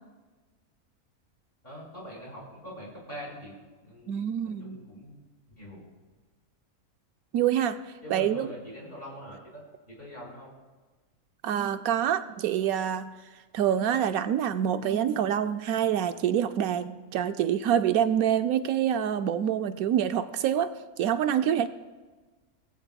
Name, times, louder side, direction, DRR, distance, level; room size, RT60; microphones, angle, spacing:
voice 1, 1.6-3.6 3.8-4.2 4.6-5.2 5.6-5.8 8.0-9.6 10.0-10.5, equal, 40° left, -4 dB, 5.2 m, -43 dB
voice 2, 4.1-4.8 7.3-7.8 8.1-8.5 11.4-13.1 13.5-21.7, right 9 dB, 80° right, 10 dB, 1.1 m, -26 dB
19.0 x 15.0 x 2.3 m, 1.3 s
omnidirectional pair, 1.5 m